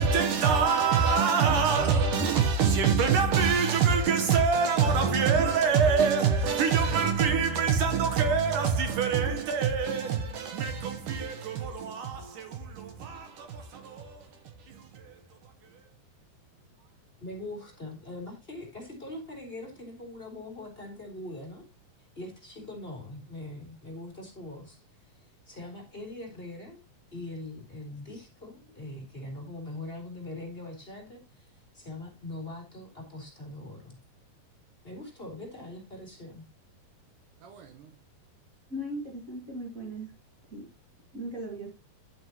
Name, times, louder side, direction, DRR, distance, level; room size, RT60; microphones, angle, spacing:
voice 1, 0.0-14.3 14.7-15.2 37.4-37.8, right 6 dB, 70° right, 2.4 m, -25 dB
voice 2, 17.2-21.6 22.2-24.8 25.1-26.8 27.1-34.0 34.8-36.4, left 2 dB, 15° left, 3.2 m, -42 dB
voice 3, 38.7-40.1 40.5-40.7 41.1-41.7, right 1 dB, 40° right, 1.2 m, -37 dB
11.5 x 7.9 x 2.9 m
omnidirectional pair, 4.3 m